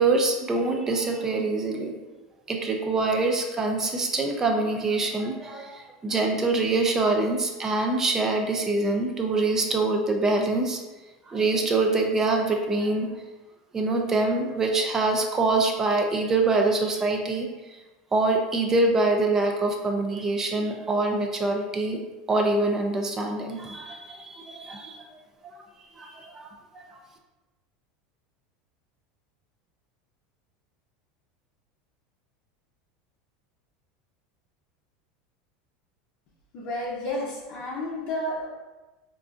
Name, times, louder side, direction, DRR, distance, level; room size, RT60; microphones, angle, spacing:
voice 1, 0.0-1.9 2.5-10.8 11.3-13.1 13.7-17.8 18.1-22.0 22.3-25.0 25.4-25.5 26.0-26.5 26.7-26.9, right 3 dB, 20° right, 3 dB, 0.3 m, -25 dB
voice 2, 36.5-38.5, left 1 dB, 50° left, -5 dB, 0.6 m, -31 dB
3.8 x 2.4 x 2.4 m, 1.2 s
supercardioid pair, 135°, 3 cm